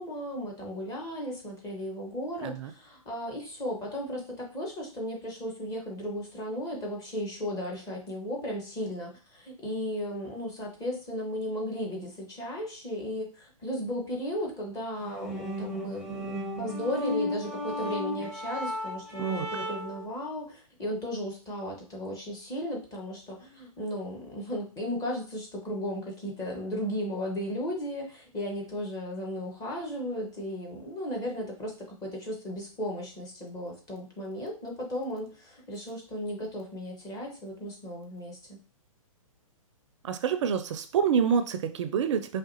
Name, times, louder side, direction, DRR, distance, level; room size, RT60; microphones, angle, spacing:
voice 1, 0.0-38.6, equal, 20° left, -1 dB, 1.6 m, -35 dB
sound 1, 15.0-20.1, left 1 dB, 5° right, 0.9 m, -34 dB
voice 2, 40.0-42.4, right 7 dB, 55° right, 10 dB, 0.5 m, -27 dB
4.8 x 3.2 x 2.9 m, 0.37 s
hypercardioid pair, 130°, 18 cm